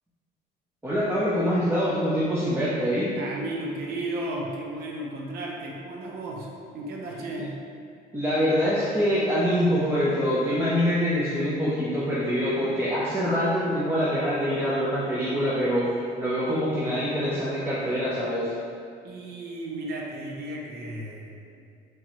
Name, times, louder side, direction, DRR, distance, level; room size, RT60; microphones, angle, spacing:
voice 1, 0.8-3.1 8.1-18.5, equal, 15° right, -9 dB, 0.6 m, -25 dB
voice 2, 3.2-7.6 19.0-21.5, right 1 dB, 70° right, -1 dB, 0.7 m, -34 dB
3.5 x 3.1 x 3.0 m, 2.3 s
cardioid pair, 110°, 17 cm